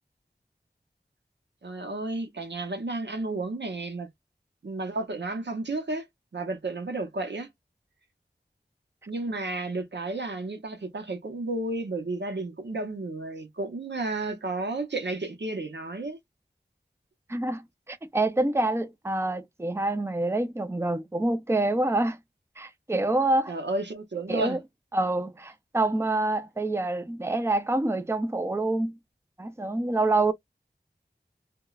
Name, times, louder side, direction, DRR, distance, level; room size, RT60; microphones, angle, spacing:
voice 1, 1.6-4.1 4.6-6.1 6.3-7.5 9.1-16.2 23.5-24.6, right 2 dB, 90° right, 0.7 m, -32 dB
voice 2, 17.3-22.2 22.6-23.5 24.3-24.6 24.9-29.0 29.4-30.3, right 2 dB, 15° right, 0.5 m, -26 dB
2.8 x 2.2 x 2.3 m
wide cardioid pair, 45°, 18 cm